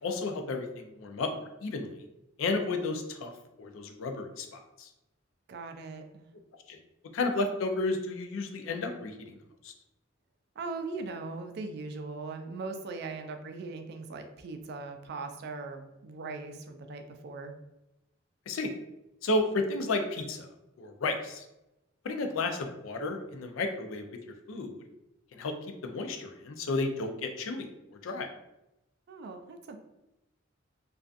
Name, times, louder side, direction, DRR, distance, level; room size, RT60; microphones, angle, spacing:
voice 1, 0.0-1.9 2.4-3.3 3.6-4.9 6.7-6.8 7.1-9.4 9.6-9.7 18.5-18.7 19.2-20.5 20.8-21.4 22.0-24.0 24.5-24.8 25.3-25.5 25.8-27.7 28.0-28.3, left 2 dB, 85° left, 5 dB, 0.4 m, -32 dB
voice 2, 5.5-6.3 10.6-17.5 29.1-29.8, right 3 dB, 55° right, 6 dB, 0.3 m, -40 dB
2.5 x 2.3 x 2.4 m, 0.92 s
head